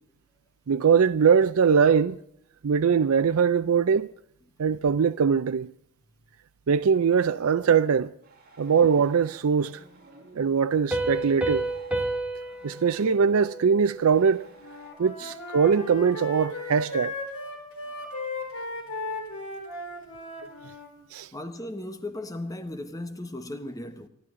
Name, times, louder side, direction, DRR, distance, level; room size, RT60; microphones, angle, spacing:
voice 1, 0.7-2.2 2.6-4.1 4.6-5.7 6.7-8.1 8.6-9.8 10.4-11.7 12.6-14.5 15.0-17.1 21.1-21.3, right 6 dB, 75° right, 0.5 m, -22 dB
sound 1, 8.2-14.9, right 2 dB, 45° right, 6.3 m, -53 dB
Piano, 10.9-14.3, right 2 dB, 5° right, 2.3 m, -31 dB
Wind instrument woodwind instrument, 14.6-20.9, left 2 dB, 75° left, 4.2 m, -36 dB
voice 2, 21.3-24.1, left 1 dB, 15° left, 1.1 m, -36 dB
26.0 x 11.5 x 3.7 m
head